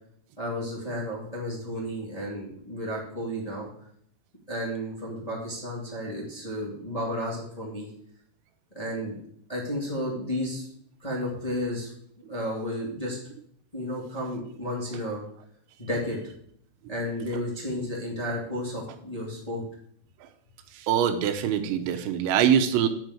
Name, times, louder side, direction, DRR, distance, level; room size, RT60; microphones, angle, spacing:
voice 1, 0.4-3.7 4.5-7.9 8.7-9.2 9.5-10.7 11.0-11.9 12.3-13.2 13.7-15.2 15.8-16.3 16.9-19.6, equal, 20° left, -5 dB, 0.9 m, -32 dB
voice 2, 20.8-22.9, right 9 dB, 75° right, 6 dB, 2.9 m, -23 dB
9.0 x 5.6 x 7.9 m, 0.66 s
omnidirectional pair, 5.7 m